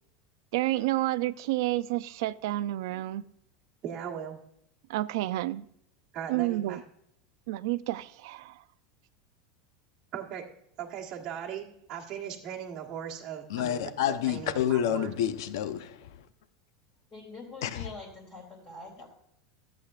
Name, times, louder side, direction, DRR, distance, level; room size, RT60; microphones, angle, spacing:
voice 1, 0.5-3.3 4.9-5.6 6.3-6.8 7.5-8.5, right 16 dB, 60° right, 0.4 m, -30 dB
voice 2, 3.8-4.4 6.1-6.8 10.1-10.5 10.8-15.1, right 9 dB, 30° right, 1.4 m, -38 dB
voice 3, 13.5-16.1 17.6-17.9, left 10 dB, 70° left, 0.8 m, -29 dB
voice 4, 17.1-19.1, left 3 dB, 20° left, 2.5 m, -44 dB
14.5 x 8.4 x 2.4 m
supercardioid pair, 180°, 2 cm